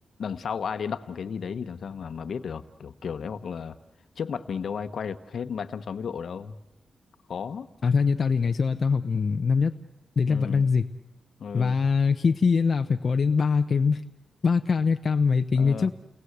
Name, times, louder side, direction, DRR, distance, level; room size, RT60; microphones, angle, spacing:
voice 1, 0.2-3.7 4.2-6.5 7.3-7.7 10.3-10.7 11.4-11.8 15.6-15.9, left 6 dB, 70° left, 12 dB, 1.1 m, -33 dB
voice 2, 7.8-9.7 10.2-10.9 11.5-14.0 14.4-15.9, left 5 dB, 55° left, 7 dB, 0.8 m, -23 dB
30.0 x 19.5 x 8.1 m, 1.1 s
cardioid pair, 85°, 0 cm